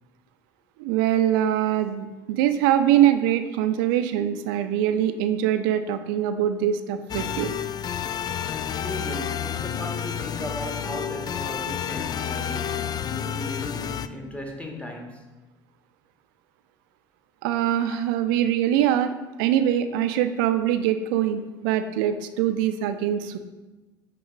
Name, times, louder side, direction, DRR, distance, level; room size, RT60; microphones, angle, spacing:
voice 1, 0.8-7.5 17.4-19.1 19.4-23.4, right 11 dB, 65° right, 0.5 m, -23 dB
sound 1, 7.1-14.1, left 9 dB, 35° left, 0.3 m, -30 dB
voice 2, 8.8-15.4, left 1 dB, 10° left, 1.4 m, -36 dB
8.7 x 3.0 x 4.9 m
figure-of-eight pair, 60°, 12 cm